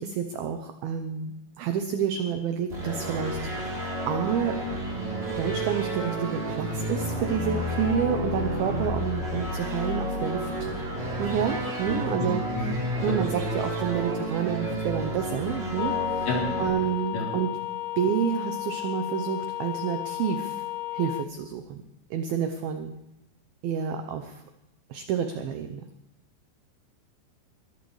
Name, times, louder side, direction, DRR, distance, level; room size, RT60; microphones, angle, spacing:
voice 1, 0.0-3.4 3.7-3.8 4.1-4.6 4.9-5.0 5.4-10.7 11.2-16.3 16.6-17.5 18.0-20.6 20.9-21.8 22.1-22.9 23.6-24.4 24.9-25.8, right 8 dB, 80° right, 6 dB, 2.2 m, -29 dB
sound 1, 2.7-16.7, right 1 dB, 15° right, 2.8 m, -31 dB
voice 2, 11.8-12.7 13.1-13.2 16.3-16.7 17.1-17.3, left 1 dB, 55° left, -3 dB, 5.5 m, -30 dB
sound 2, 15.8-21.3, left 17 dB, 80° left, 2.5 m, -33 dB
23.0 x 14.5 x 3.2 m, 0.83 s
omnidirectional pair, 5.3 m